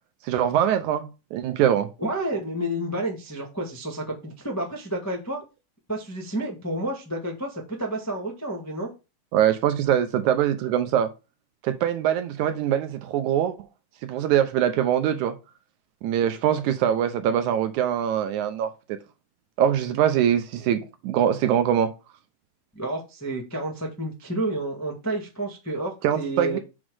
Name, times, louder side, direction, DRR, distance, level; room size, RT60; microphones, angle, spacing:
voice 1, 0.2-1.9 9.3-11.1 11.6-13.5 14.0-15.4 16.0-18.7 19.6-21.9 26.0-26.6, right 10 dB, 75° right, 2.0 m, -23 dB
voice 2, 2.0-5.4 5.9-8.9 22.7-26.6, right 1 dB, 25° left, 0.3 m, -30 dB
6.1 x 4.1 x 6.2 m
omnidirectional pair, 3.8 m